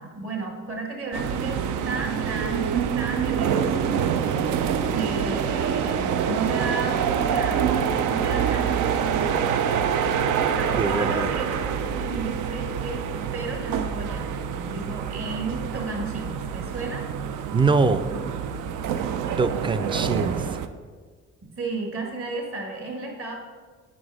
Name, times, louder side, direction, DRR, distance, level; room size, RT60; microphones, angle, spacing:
voice 1, 0.0-1.6 1.9-4.0 4.9-7.6 8.1-9.9 10.5-14.3 14.6-17.0 21.6-23.3, right 3 dB, 45° right, 1 dB, 1.8 m, -33 dB
sound 1, 1.1-20.7, right 7 dB, 85° right, 0.5 m, -26 dB
voice 2, 10.8-11.3 17.5-18.0 19.4-20.4, right 4 dB, 15° right, 12 dB, 0.3 m, -23 dB
6.1 x 5.2 x 4.8 m, 1.5 s
cardioid pair, 90°, 30 cm